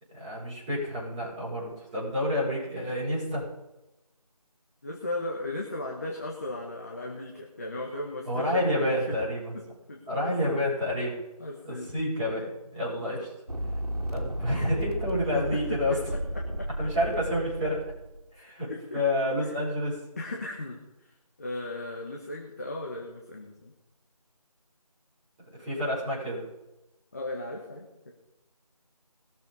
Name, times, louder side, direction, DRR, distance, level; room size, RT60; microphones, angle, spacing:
voice 1, 0.1-3.4 8.3-9.4 10.1-11.2 11.6-13.3 14.1-16.0 16.8-17.8 18.3-20.0 25.6-26.4, left 1 dB, 10° right, -11 dB, 5.6 m, -29 dB
voice 2, 4.8-9.2 9.5-10.7 11.4-11.9 13.0-13.2 15.3-16.7 18.4-19.0 19.5-19.6 20.2-21.1 21.4-23.7 27.1-28.1, left 2 dB, 25° left, -1 dB, 1.5 m, -37 dB
sound 1, 13.5-18.2, equal, 80° right, 2.9 m, -34 dB
20.5 x 7.6 x 5.5 m, 0.97 s
figure-of-eight pair, 170°, 20 cm